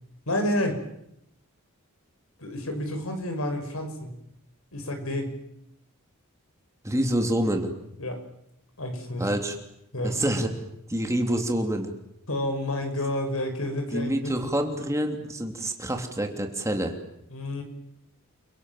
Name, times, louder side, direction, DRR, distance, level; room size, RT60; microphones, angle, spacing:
voice 1, 0.3-0.8 2.4-4.1 4.7-5.3 8.0-8.2 8.8-9.3 9.9-10.2 12.3-14.3 17.3-17.6, left 1 dB, 75° left, 6 dB, 6.2 m, -29 dB
voice 2, 6.8-7.7 9.2-9.6 10.0-10.5 10.9-11.9 13.9-16.9, right 1 dB, 15° right, 4 dB, 3.1 m, -27 dB
30.0 x 24.0 x 7.7 m, 0.80 s
head